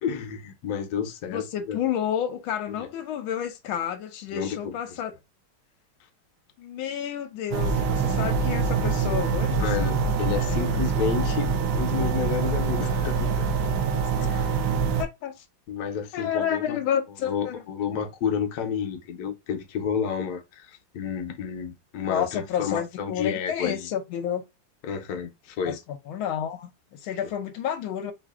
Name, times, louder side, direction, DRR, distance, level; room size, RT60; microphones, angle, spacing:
voice 1, 0.0-1.8 2.8-2.9 4.3-5.0 9.6-13.5 14.2-14.6 15.7-16.8 17.2-23.9 24.8-25.8, left 7 dB, 65° left, 1.0 m, -31 dB
voice 2, 1.3-5.1 6.6-9.9 10.5-10.8 15.0-15.4 16.1-17.6 22.1-24.4 25.7-28.1, left 9 dB, 85° left, 1.4 m, -30 dB
sound 1, 7.5-15.0, right 5 dB, 75° right, 1.0 m, -25 dB
4.7 x 2.5 x 2.4 m
omnidirectional pair, 2.2 m